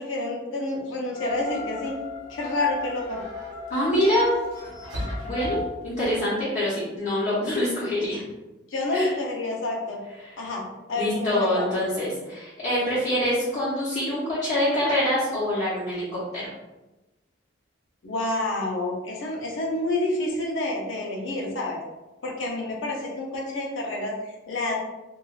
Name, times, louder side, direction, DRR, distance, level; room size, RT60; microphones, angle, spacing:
voice 1, 0.0-1.9 2.3-3.2 8.7-10.0 10.4-10.6 10.9-11.8 18.0-21.8 22.2-24.8, left 2 dB, 85° left, -1 dB, 0.6 m, -28 dB
sound 1, 1.1-5.6, left 3 dB, 15° right, 0.8 m, -37 dB
sound 2, 1.2-6.2, equal, 90° right, 0.9 m, -39 dB
voice 2, 3.7-4.3 5.2-8.2 8.9-9.1 10.2-10.4 11.0-16.0 16.3-16.5, left 1 dB, 40° left, -12 dB, 0.8 m, -25 dB
3.1 x 2.4 x 2.4 m, 1.0 s
head